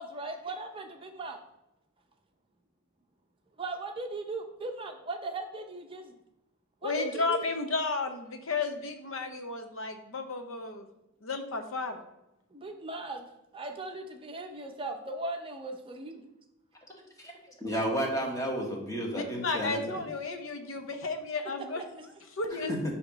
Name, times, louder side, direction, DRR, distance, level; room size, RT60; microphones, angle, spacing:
voice 1, 0.0-1.4 3.6-6.2 6.8-7.4 12.5-13.3 13.5-16.2 21.7-22.1, right 2 dB, 25° right, 4 dB, 0.6 m, -38 dB
voice 2, 6.8-10.9 11.2-12.0 19.1-21.8 22.3-22.7, left 3 dB, 80° left, 6 dB, 0.7 m, -33 dB
voice 3, 17.6-19.8 22.6-22.8, equal, 15° left, 0 dB, 1.3 m, -31 dB
7.9 x 2.9 x 5.5 m, 0.90 s
head